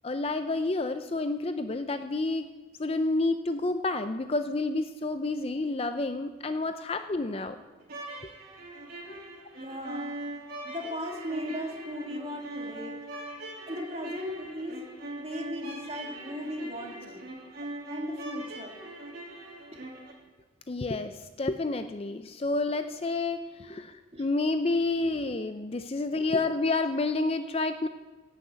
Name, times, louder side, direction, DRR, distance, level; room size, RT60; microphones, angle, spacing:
voice 1, 0.0-2.5 2.8-7.6 9.1-9.3 20.7-27.9, left 2 dB, 30° left, 9 dB, 0.4 m, -29 dB
sound 1, 7.8-20.1, right 2 dB, 45° right, 2.9 m, -41 dB
voice 2, 9.6-13.0 13.7-14.8 15.2-17.3 17.9-18.7 19.7-19.8 24.1-24.2 26.4-26.8, equal, 30° right, 1 dB, 2.0 m, -37 dB
16.5 x 6.5 x 8.1 m, 1.2 s
head